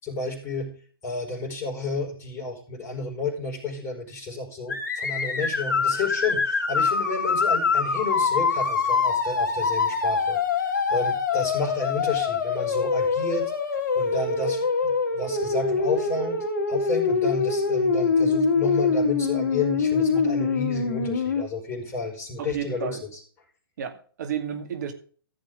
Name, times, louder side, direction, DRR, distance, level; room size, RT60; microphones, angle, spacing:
voice 1, 0.0-0.7 1.0-10.4 10.6-13.5 13.9-23.0, left 3 dB, 20° left, 2 dB, 5.0 m, -31 dB
sound 1, 4.7-21.4, left 5 dB, 50° left, 3.3 m, -24 dB
voice 2, 22.4-23.0 23.8-24.9, right 8 dB, 50° right, 7 dB, 2.2 m, -32 dB
15.0 x 7.5 x 3.6 m, 0.43 s
hypercardioid pair, 135°, 12 cm